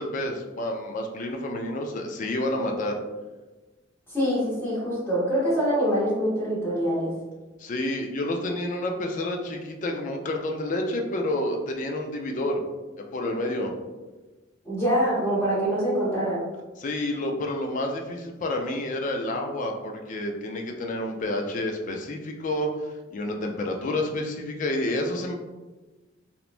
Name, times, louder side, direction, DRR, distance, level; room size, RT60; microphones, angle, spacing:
voice 1, 0.0-3.0 7.6-12.6 13.1-13.7 16.8-22.7 23.1-25.3, left 1 dB, 40° left, 2 dB, 0.3 m, -29 dB
voice 2, 4.1-7.1 14.6-16.4, equal, 10° left, -9 dB, 1.1 m, -24 dB
2.9 x 2.1 x 2.4 m, 1.2 s
head